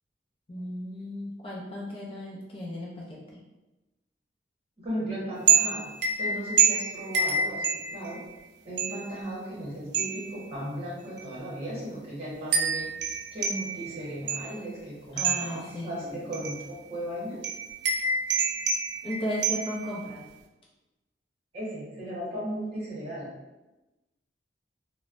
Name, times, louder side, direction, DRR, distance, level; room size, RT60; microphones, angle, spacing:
voice 1, 0.5-3.2 15.1-16.3 19.0-20.2, equal, 30° left, -5 dB, 0.4 m, -35 dB
voice 2, 4.8-5.9 6.2-7.6 7.9-8.2 8.6-17.5 21.5-23.3, right 1 dB, 30° right, -8 dB, 1.1 m, -36 dB
sound 1, 5.5-8.3 8.8-9.2 9.9-10.5 11.2-11.3 12.5-14.7 15.2-15.7 16.3-16.7 17.4-20.0, right 5 dB, 60° right, 0.3 m, -27 dB
3.1 x 2.0 x 2.5 m, 1.0 s
head